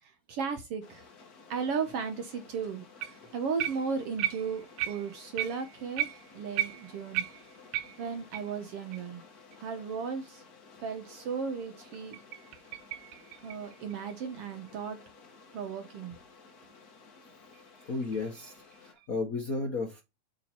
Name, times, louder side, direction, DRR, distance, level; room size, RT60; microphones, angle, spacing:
voice 1, 0.0-1.1 1.5-2.8 3.3-6.1 6.3-7.2 8.0-9.2 9.6-10.4 10.8-12.2 13.4-15.0 15.5-16.2, right 5 dB, 65° right, 1.6 m, -35 dB
sound 1, 0.8-18.9, left 4 dB, 45° left, 1.3 m, -55 dB
sound 2, 3.0-3.3 3.6-8.5 8.9-9.0 9.5-9.6 10.1-10.2 11.9-14.7 17.5-19.1, right 13 dB, 85° right, 2.2 m, -36 dB
voice 2, 17.9-20.0, left 3 dB, 65° left, 0.8 m, -34 dB
8.3 x 4.0 x 4.4 m
omnidirectional pair, 3.6 m